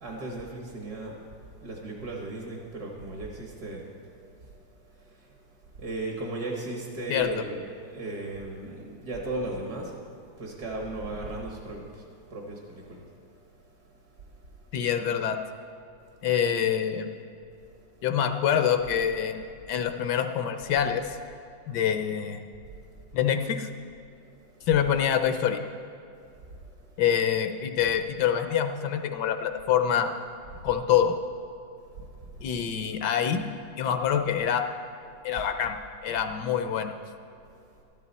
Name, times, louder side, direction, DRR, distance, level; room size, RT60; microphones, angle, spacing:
voice 1, 0.0-1.3 1.6-4.6 5.0-5.3 5.8-10.1 10.4-13.1 26.4-26.7 32.2-32.3, right 2 dB, 60° right, -1 dB, 1.9 m, -36 dB
voice 2, 14.7-15.4 16.2-17.1 18.0-19.4 19.7-21.0 21.7-22.4 23.1-23.7 24.7-25.6 27.0-30.2 30.6-31.2 32.4-33.5 33.8-34.6 35.2-35.7 36.0-37.0, left 8 dB, 70° left, 7 dB, 1.2 m, -25 dB
13.5 x 12.5 x 4.1 m, 2.5 s
omnidirectional pair, 2.0 m